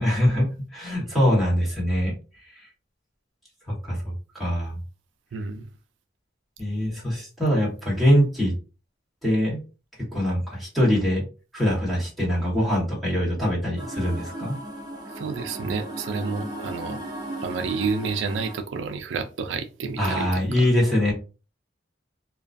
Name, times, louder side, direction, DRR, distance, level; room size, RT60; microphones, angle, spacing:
voice 1, 0.0-2.1 3.7-4.8 6.6-8.5 9.2-9.6 10.0-11.2 11.5-14.6 20.0-21.1, equal, ahead, 1.2 m, -23 dB
voice 2, 5.3-5.7 15.1-17.0 17.4-20.7, right 5 dB, 80° right, 0.3 m, -30 dB
sound 1, 13.8-18.6, right 1 dB, 20° right, 0.6 m, -36 dB
2.3 x 2.2 x 2.5 m
head